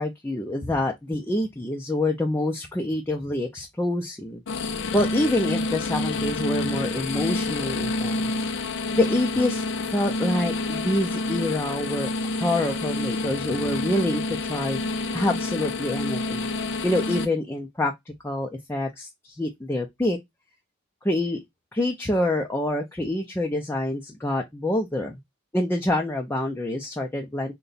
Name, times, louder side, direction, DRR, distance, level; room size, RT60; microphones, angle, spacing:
voice 1, 0.0-4.4 4.9-8.3 9.0-9.6 9.9-14.8 15.1-16.5 16.8-20.2 21.0-21.4 21.7-25.2 25.5-27.5, left 1 dB, 10° left, 0.5 m, -26 dB
sound 1, 4.5-17.3, left 2 dB, 65° left, 0.5 m, -28 dB
3.8 x 2.2 x 3.9 m
head